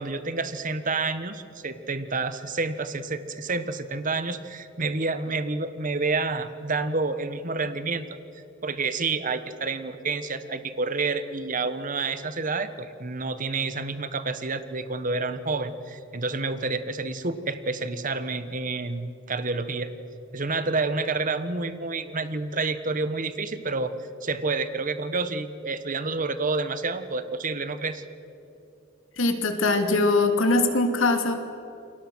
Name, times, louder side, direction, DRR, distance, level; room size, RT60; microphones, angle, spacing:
voice 1, 0.0-8.1 8.6-19.9 20.3-23.9 24.2-28.0, right 3 dB, 40° right, 11 dB, 1.3 m, -29 dB
voice 2, 29.2-31.3, left 2 dB, 80° left, 6 dB, 2.6 m, -22 dB
28.5 x 23.0 x 6.3 m, 2.8 s
head